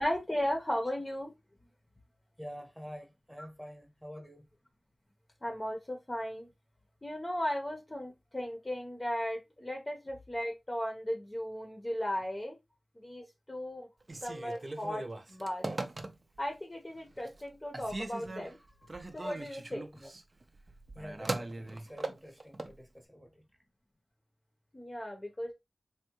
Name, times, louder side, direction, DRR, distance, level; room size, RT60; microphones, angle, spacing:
voice 1, 0.0-1.3 5.4-6.5 7.0-12.6 13.0-13.9 14.2-15.0 15.3-15.7 16.4-18.6 19.1-19.9 24.7-25.5, equal, 25° left, 0.7 m, -36 dB
voice 2, 2.4-4.5 14.3-14.7 19.9-20.1 20.9-23.5, equal, 5° right, 0.9 m, -48 dB
Telephone, 14.0-16.5 17.0-17.5 17.7-22.8, right 2 dB, 45° right, 0.4 m, -40 dB
3.4 x 2.2 x 2.9 m
wide cardioid pair, 65°, 0 cm